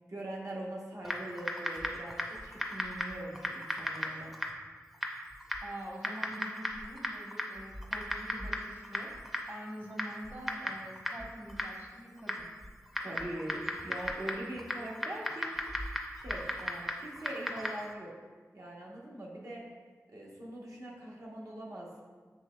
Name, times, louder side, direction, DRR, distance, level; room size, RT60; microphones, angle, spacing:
voice 1, 0.1-4.3 13.0-15.6 16.1-18.1 18.5-19.6 20.1-21.9, right 1 dB, 70° right, -4 dB, 0.9 m, -42 dB
Typing, 1.0-17.9, equal, 5° right, 0.5 m, -38 dB
voice 2, 5.6-9.1 9.5-12.5, equal, 35° right, -1 dB, 1.0 m, -45 dB
7.1 x 3.0 x 2.2 m, 1.5 s
wide cardioid pair, 50°, 6 cm